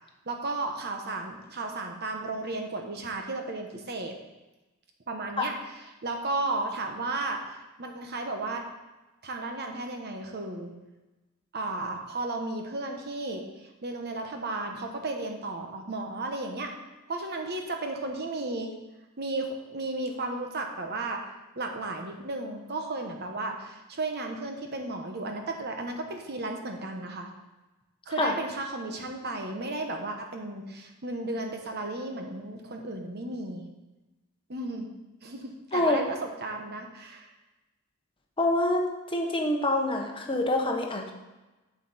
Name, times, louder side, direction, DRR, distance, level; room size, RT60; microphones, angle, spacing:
voice 1, 0.3-4.1 5.1-5.5 6.0-7.4 7.8-8.6 9.2-10.7 11.5-16.7 17.1-18.7 19.2-21.2 21.5-27.3 28.1-33.6 34.5-34.9 35.2-37.3, right 2 dB, 50° right, 3 dB, 1.1 m, -34 dB
voice 2, 35.7-36.0 38.4-41.1, left 2 dB, 25° left, 2 dB, 1.0 m, -26 dB
8.1 x 6.4 x 4.2 m, 1.1 s
head